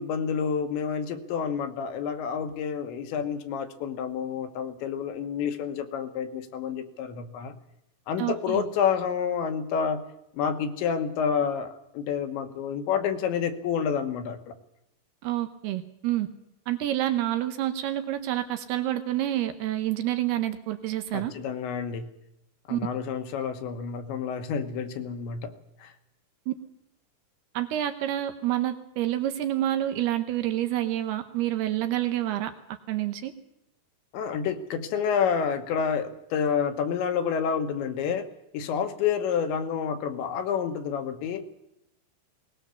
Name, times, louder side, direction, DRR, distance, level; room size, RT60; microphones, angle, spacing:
voice 1, 0.0-7.5 8.1-10.0 10.3-14.5 21.1-22.1 22.7-25.5 25.8-25.9 34.1-38.3 38.5-41.5, left 7 dB, 70° left, 7 dB, 3.4 m, -29 dB
voice 2, 8.2-8.6 15.2-16.3 16.7-21.3 22.7-22.8 26.5-26.6 27.5-33.3, right 13 dB, 75° right, 9 dB, 2.4 m, -28 dB
21.5 x 19.5 x 7.0 m, 0.83 s
omnidirectional pair, 5.7 m